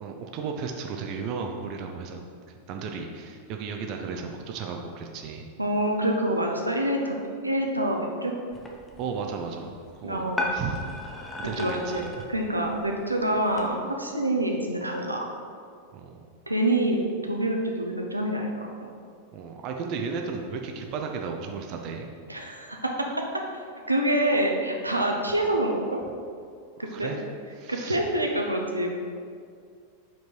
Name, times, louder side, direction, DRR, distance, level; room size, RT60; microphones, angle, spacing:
voice 1, 0.0-2.3 2.7-5.5 9.0-10.9 11.3-12.1 15.9-16.3 19.3-22.1 26.8-27.2 27.6-28.0, right 5 dB, 40° right, 3 dB, 0.6 m, -34 dB
voice 2, 5.6-8.3 10.0-10.5 11.6-15.3 16.5-18.9 22.3-23.3 23.9-26.0 26.8-27.1 27.7-29.0, right 1 dB, 85° right, 1 dB, 0.7 m, -26 dB
sound 1, 8.5-13.7, left 1 dB, 10° left, 0.9 m, -36 dB
5.3 x 4.5 x 5.3 m, 2.2 s
figure-of-eight pair, 90°, 0 cm